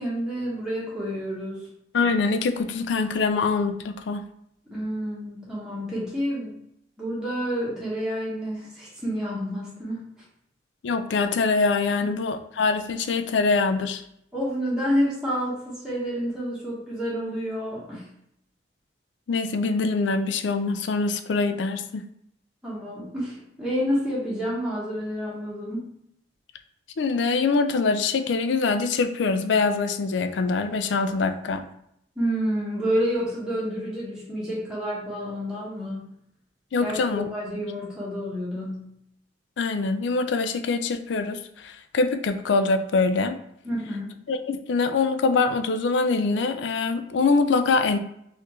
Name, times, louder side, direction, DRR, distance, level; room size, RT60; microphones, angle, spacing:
voice 1, 0.0-1.7 4.7-6.6 7.0-10.0 12.0-12.1 14.3-18.1 22.6-25.9 32.2-36.1 36.8-38.9 43.6-44.2, equal, 5° right, -8 dB, 1.1 m, -29 dB
voice 2, 1.9-4.2 10.8-14.0 19.3-22.0 27.0-31.6 36.7-37.3 39.6-43.4 44.3-48.0, left 4 dB, 75° left, 9 dB, 0.4 m, -24 dB
4.2 x 2.6 x 3.0 m, 0.74 s
head